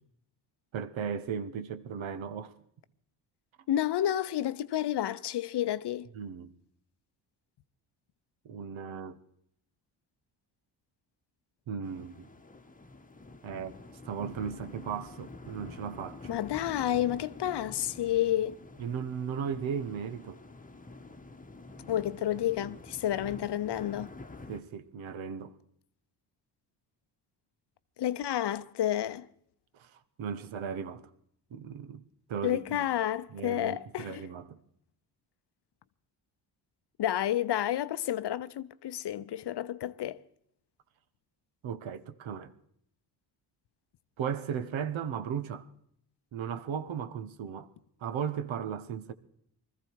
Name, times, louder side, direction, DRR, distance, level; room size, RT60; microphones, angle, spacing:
voice 1, 0.7-2.5 6.1-6.5 8.4-9.2 11.7-12.3 13.4-16.4 18.8-20.4 24.5-25.6 29.7-31.1 31.5-32.0 32.3-32.9 33.3-34.6 41.6-42.5 44.2-45.7 46.3-47.7 48.0-49.1, right 7 dB, 65° right, 1.2 m, -36 dB
voice 2, 3.7-6.1 16.3-18.6 21.8-24.1 28.0-29.3 32.4-34.2 37.0-40.2, left 12 dB, 55° left, 0.7 m, -30 dB
sound 1, 11.8-24.6, left 2 dB, 15° left, 1.2 m, -48 dB
20.5 x 14.0 x 4.7 m
supercardioid pair, 60°, 49 cm